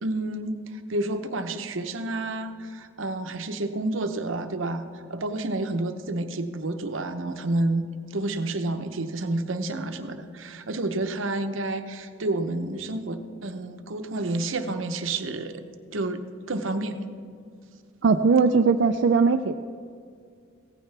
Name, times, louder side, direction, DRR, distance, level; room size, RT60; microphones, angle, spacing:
voice 1, 0.0-15.6 15.9-16.2 16.5-17.1, right 2 dB, 85° right, 8 dB, 0.8 m, -29 dB
voice 2, 18.0-19.5, right 4 dB, 65° right, 5 dB, 0.4 m, -19 dB
16.5 x 15.0 x 3.4 m, 2.3 s
head